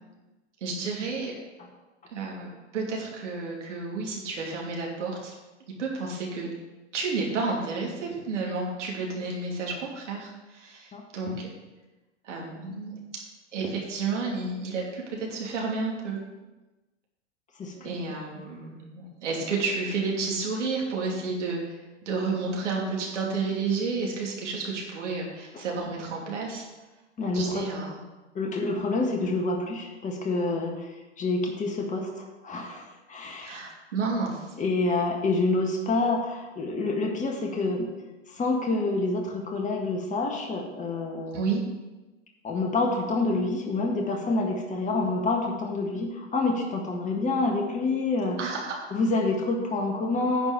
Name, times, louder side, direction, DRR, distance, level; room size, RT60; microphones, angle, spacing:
voice 1, 0.6-1.3 2.1-5.3 5.8-6.5 6.9-11.5 12.2-13.0 13.5-16.2 17.7-26.7 27.3-28.0 33.4-34.5 41.3-41.6 48.4-48.9, right 4 dB, 80° right, -2 dB, 2.8 m, -31 dB
voice 2, 27.2-27.6 28.4-30.9 31.2-33.5 34.6-37.9 38.3-41.4 42.4-48.4 48.9-50.5, left 3 dB, 20° left, 2 dB, 1.7 m, -27 dB
10.0 x 4.6 x 7.3 m, 1.1 s
hypercardioid pair, 110°, 36 cm